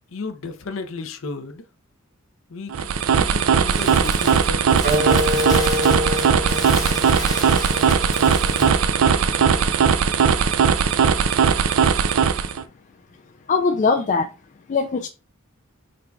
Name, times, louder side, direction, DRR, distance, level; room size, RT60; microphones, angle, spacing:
voice 1, 0.1-1.6 2.5-5.5, left 3 dB, 70° left, 0.6 m, -34 dB
sound 1, 2.7-12.6, right 6 dB, 80° right, 0.4 m, -19 dB
Crumpling crinkling, 3.7-8.9, left 3 dB, 20° left, 0.8 m, -34 dB
sound 2, 4.8-9.9, left 1 dB, 50° right, 0.8 m, -27 dB
voice 2, 13.5-14.3 14.7-15.1, left 4 dB, 35° left, 0.3 m, -20 dB
3.8 x 2.3 x 4.5 m
head